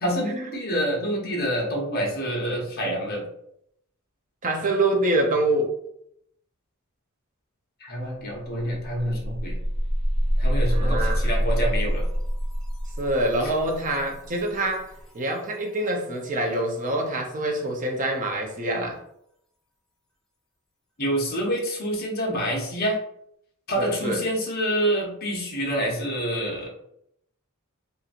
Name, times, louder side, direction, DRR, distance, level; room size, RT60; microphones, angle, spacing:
voice 1, 0.0-3.3 7.8-9.6 10.4-12.1 13.4-13.5 21.0-23.0 23.7-26.7, equal, 45° left, -2 dB, 0.9 m, -27 dB
voice 2, 4.4-5.7 10.7-11.2 13.0-19.0 23.8-24.2, right 1 dB, 40° right, 1 dB, 0.6 m, -25 dB
sound 1, 8.0-8.1 8.4-15.2, equal, 5° left, 0.6 m, -26 dB
2.8 x 2.6 x 2.4 m, 0.73 s
head